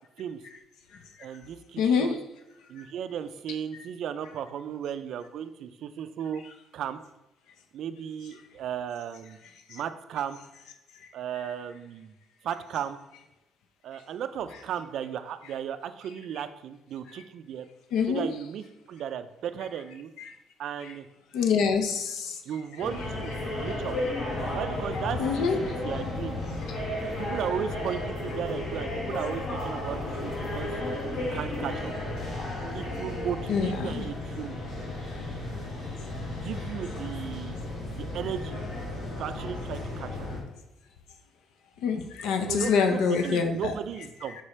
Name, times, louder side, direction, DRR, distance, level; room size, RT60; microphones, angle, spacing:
voice 1, 1.2-2.2 2.7-6.4 6.7-7.0 7.7-9.4 9.7-10.4 11.1-12.1 12.4-13.0 13.8-17.7 18.1-20.1 20.6-21.1 22.5-23.9 24.5-26.4 27.2-30.7 31.2-31.9 32.7-34.6 36.4-37.6 38.0-38.6 39.2-40.1 42.5-44.4, right 9 dB, 55° right, 11 dB, 0.3 m, -35 dB
voice 2, 1.8-2.1 17.9-18.3 21.3-22.3 25.2-25.6 33.5-34.0 41.8-43.7, left 6 dB, 85° left, 6 dB, 0.6 m, -25 dB
sound 1, 22.8-40.4, left 1 dB, 60° left, 1.6 m, -33 dB
5.3 x 4.9 x 4.2 m, 0.95 s
cardioid pair, 175°, 0 cm